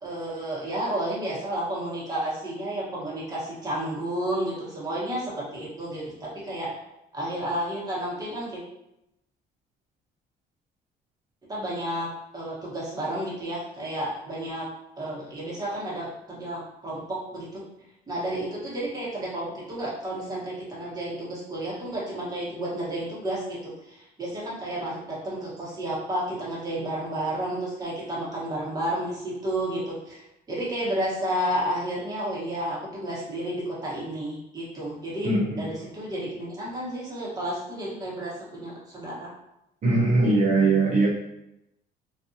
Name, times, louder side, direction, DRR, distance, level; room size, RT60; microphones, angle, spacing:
voice 1, 0.0-6.8 7.1-8.6 11.5-14.7 15.0-17.6 18.1-30.2 30.5-35.3 35.5-39.3, right 1 dB, 20° right, -6 dB, 1.1 m, -31 dB
voice 2, 35.2-35.6 39.8-41.1, right 3 dB, 40° right, -4 dB, 0.7 m, -21 dB
2.5 x 2.4 x 2.7 m, 0.85 s
cardioid pair, 110°, 17 cm